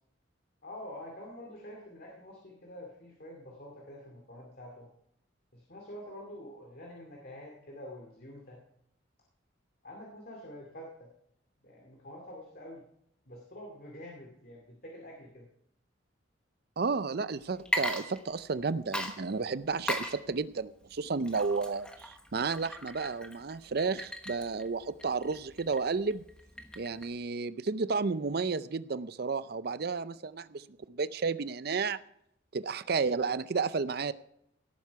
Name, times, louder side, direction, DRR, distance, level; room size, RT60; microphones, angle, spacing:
voice 1, 0.6-4.9 5.5-8.6 9.8-11.1 11.6-12.9 13.3-15.5, left 1 dB, 50° left, 0 dB, 2.5 m, -47 dB
voice 2, 16.8-26.2 26.8-32.0 32.5-34.1, right 4 dB, 50° right, 15 dB, 0.5 m, -32 dB
Water / Liquid, 17.6-18.6 18.9-27.2, left 1 dB, 5° left, 1.1 m, -38 dB
17.5 x 9.3 x 4.7 m, 0.75 s
head